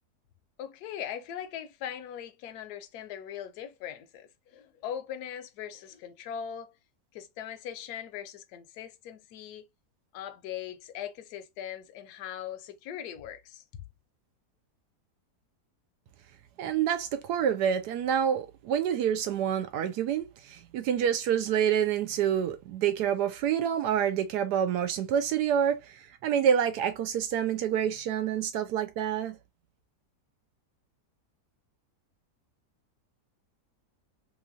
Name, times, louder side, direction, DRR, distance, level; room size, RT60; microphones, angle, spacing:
voice 1, 0.6-6.7 7.1-9.7 10.1-13.8, left 9 dB, 75° left, 1.1 m, -40 dB
voice 2, 16.6-29.4, right 9 dB, 80° right, 1.2 m, -27 dB
3.2 x 3.0 x 2.4 m
omnidirectional pair, 1.8 m